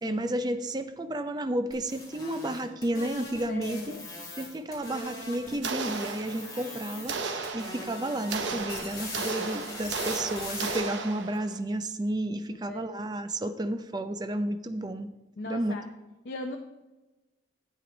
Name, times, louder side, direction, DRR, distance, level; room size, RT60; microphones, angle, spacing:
voice 1, 0.0-3.9 4.4-15.1 15.5-15.7, right 1 dB, 20° right, 8 dB, 0.5 m, -32 dB
sound 1, 1.7-5.6 5.8-7.2 7.4-10.8, left 1 dB, 20° left, 2.4 m, -41 dB
voice 2, 3.5-4.1 12.6-12.8 15.4-15.9 16.2-16.6, left 2 dB, 60° left, 2 dB, 0.7 m, -38 dB
sound 2, 5.6-6.7 7.1-11.6, right 4 dB, 70° right, 0.9 m, -35 dB
10.0 x 8.5 x 3.9 m, 1.1 s
head